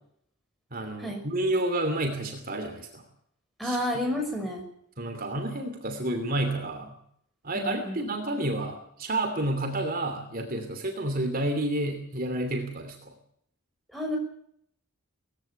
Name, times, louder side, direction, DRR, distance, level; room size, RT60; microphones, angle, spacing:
voice 1, 0.7-3.0 3.6-3.8 5.0-7.0 7.4-13.1, right 1 dB, 40° right, 5 dB, 2.8 m, -30 dB
voice 2, 3.6-4.6 7.5-8.0 13.9-14.2, left 1 dB, ahead, 1 dB, 5.6 m, -30 dB
19.5 x 16.0 x 9.0 m, 0.68 s
head